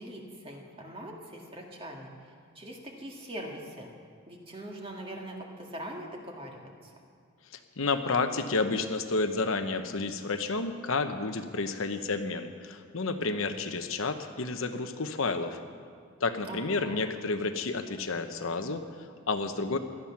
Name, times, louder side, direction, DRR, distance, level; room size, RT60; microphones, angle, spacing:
voice 1, 0.0-3.9 4.3-6.9 16.5-17.1, right 1 dB, 25° right, 0 dB, 1.9 m, -42 dB
voice 2, 7.5-15.6 16.2-19.8, left 3 dB, 75° left, 7 dB, 0.9 m, -31 dB
17.5 x 12.0 x 5.9 m, 2.2 s
head